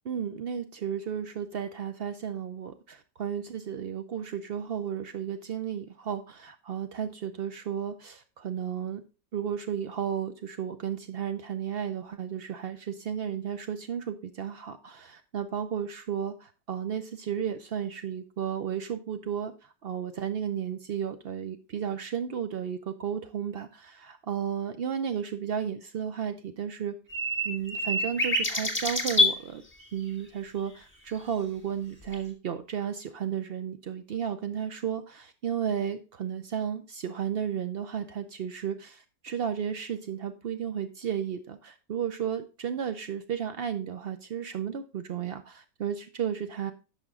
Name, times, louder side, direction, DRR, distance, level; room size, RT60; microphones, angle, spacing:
voice 1, 0.1-9.0 9.3-26.9 27.4-29.6 29.9-46.7, right 8 dB, 80° right, 9 dB, 0.5 m, -33 dB
sound 1, 27.1-29.3 32.1-32.2, left 1 dB, 5° left, 1.8 m, -26 dB
11.0 x 6.2 x 3.6 m, 0.31 s
omnidirectional pair, 1.8 m